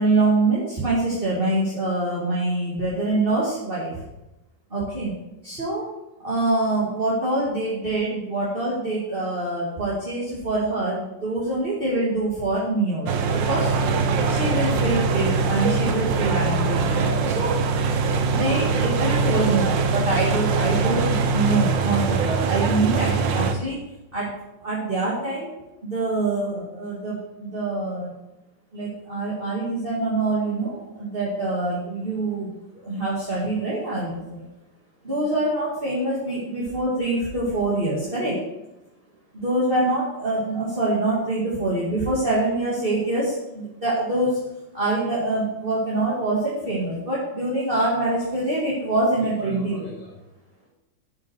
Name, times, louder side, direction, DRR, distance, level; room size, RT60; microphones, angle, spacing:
voice 1, 0.0-3.9 4.7-5.1 5.4-5.9 6.2-13.7 14.3-17.5 18.3-23.8 24.1-24.3 24.6-25.5 25.8-28.1 28.7-32.5 32.8-34.4 35.0-38.4 39.3-44.4 44.7-50.1, right 2 dB, 30° right, -8 dB, 2.5 m, -25 dB
sound 1, 13.1-23.5, right 4 dB, 80° right, 1.6 m, -22 dB
13.5 x 6.4 x 4.5 m, 0.95 s
omnidirectional pair, 2.0 m